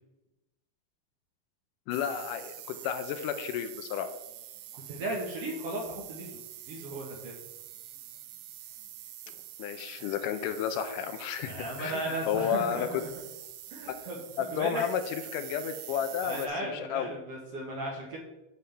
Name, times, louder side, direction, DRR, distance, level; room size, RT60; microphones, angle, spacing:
voice 1, 1.9-4.1 9.6-13.0 14.4-17.1, left 8 dB, 80° left, 9 dB, 2.1 m, -32 dB
sound 1, 1.9-16.5, right 12 dB, 80° right, 1.8 m, -46 dB
voice 2, 4.7-6.4 6.7-7.3 11.4-13.1 13.7-14.2 14.5-14.8 16.2-18.2, right 1 dB, 60° right, -1 dB, 1.6 m, -36 dB
9.4 x 3.3 x 6.9 m, 0.98 s
omnidirectional pair, 3.9 m